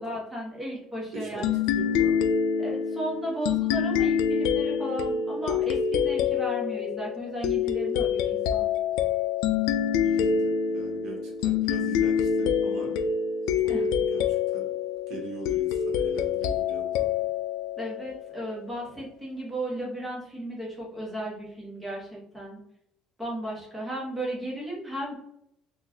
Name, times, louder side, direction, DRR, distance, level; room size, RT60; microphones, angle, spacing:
voice 1, 0.0-1.6 2.6-8.7 13.7-13.9 17.8-22.6 23.2-25.1, right 1 dB, 5° right, -4 dB, 1.1 m, -35 dB
voice 2, 1.1-2.3 10.0-13.0 13.6-13.7 14.1-14.7 15.1-17.2, right 2 dB, 55° right, -3 dB, 1.1 m, -40 dB
sound 1, 1.4-18.6, left 7 dB, 90° left, 0.3 m, -26 dB
3.8 x 2.4 x 2.8 m, 0.76 s
cardioid pair, 170°, 0 cm